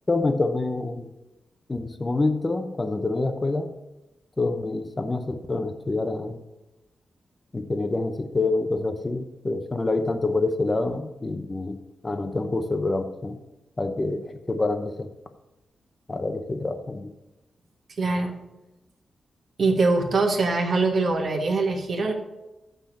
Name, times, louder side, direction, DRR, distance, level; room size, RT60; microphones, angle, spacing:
voice 1, 0.1-1.1 1.7-3.7 4.4-6.4 7.5-11.8 12.0-13.4 13.8-14.2 14.5-15.1 16.1-17.1, left 2 dB, 20° left, 7 dB, 0.7 m, -26 dB
voice 2, 18.0-18.4 19.6-22.1, right 3 dB, 50° right, 3 dB, 1.3 m, -23 dB
6.8 x 5.8 x 7.1 m, 0.98 s
wide cardioid pair, 130°, 0 cm